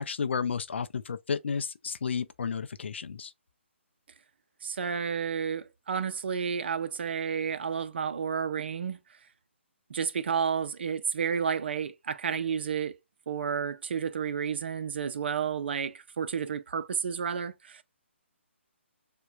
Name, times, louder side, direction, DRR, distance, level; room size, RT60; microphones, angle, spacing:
voice 1, 0.0-3.3, left 6 dB, 60° left, 0.4 m, -32 dB
voice 2, 4.6-9.0 9.9-13.0 13.3-17.8, right 7 dB, 55° right, 0.6 m, -31 dB
6.7 x 2.3 x 2.3 m
figure-of-eight pair, 140°, 7 cm